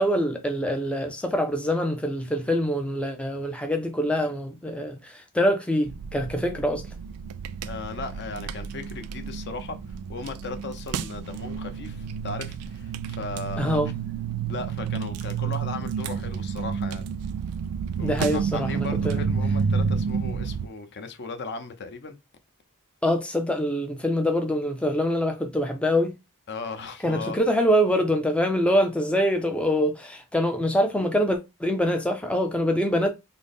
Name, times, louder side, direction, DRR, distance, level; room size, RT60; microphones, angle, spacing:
voice 1, 0.0-6.8 13.6-13.9 18.0-19.2 23.0-26.1 27.0-33.1, equal, 5° left, 0.4 m, -24 dB
sound 1, 5.9-20.7, right 6 dB, 85° right, 0.3 m, -30 dB
voice 2, 7.6-13.8 14.5-17.1 18.0-22.1 26.5-27.4, left 3 dB, 50° left, 0.6 m, -37 dB
3.9 x 2.1 x 3.4 m
head